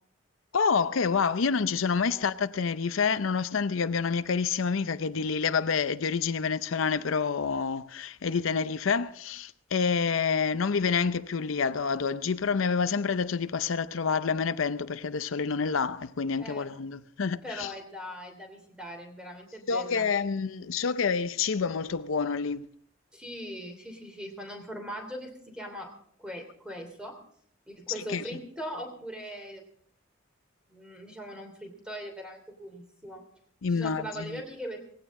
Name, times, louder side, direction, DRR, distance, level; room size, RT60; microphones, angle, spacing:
voice 1, 0.5-17.7 19.7-22.7 28.1-28.2 33.6-34.4, left 5 dB, 85° left, 0.6 m, -28 dB
voice 2, 17.4-20.1 23.1-25.9 26.2-27.2 27.7-29.6 30.7-33.2 33.7-34.9, equal, 5° right, 2.9 m, -40 dB
18.0 x 16.0 x 3.7 m
head